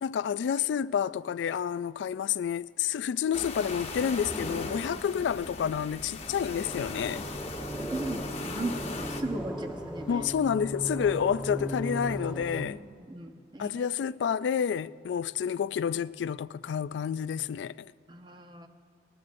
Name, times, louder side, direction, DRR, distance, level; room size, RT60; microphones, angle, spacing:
voice 1, 0.0-7.2 10.1-12.8 13.6-17.9, left 8 dB, 90° left, 0.3 m, -29 dB
sound 1, 3.3-9.2, left 2 dB, 35° left, 1.0 m, -38 dB
voice 2, 4.9-5.2 7.7-10.1 12.6-13.9 18.1-18.7, right 2 dB, 25° right, 0.8 m, -38 dB
sound 2, 6.6-12.6, right 1 dB, 5° right, 1.5 m, -37 dB
20.0 x 19.5 x 2.6 m
head